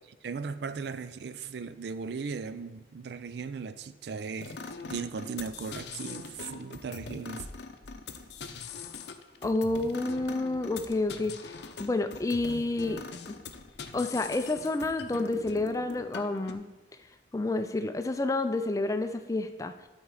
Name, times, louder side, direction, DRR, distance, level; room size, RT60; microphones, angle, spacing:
voice 1, 0.2-4.6 4.9-7.5, right 5 dB, 65° right, 13 dB, 0.4 m, -37 dB
sound 1, 4.4-16.5, left 4 dB, 70° left, 0.6 m, -42 dB
voice 2, 9.4-11.5 11.8-13.4 13.9-16.6 17.3-19.7, left 2 dB, 20° left, 9 dB, 0.4 m, -29 dB
12.0 x 4.3 x 4.7 m, 1.2 s
head